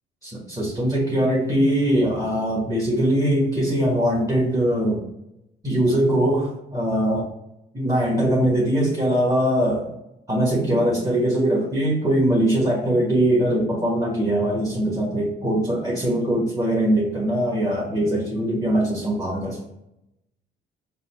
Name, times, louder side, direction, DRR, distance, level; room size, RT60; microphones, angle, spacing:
voice 1, 0.2-5.0 5.6-7.3 7.7-9.9 10.3-19.6, right 1 dB, 20° right, -5 dB, 1.3 m, -21 dB
4.1 x 2.2 x 4.1 m, 0.84 s
cardioid pair, 90°, 20 cm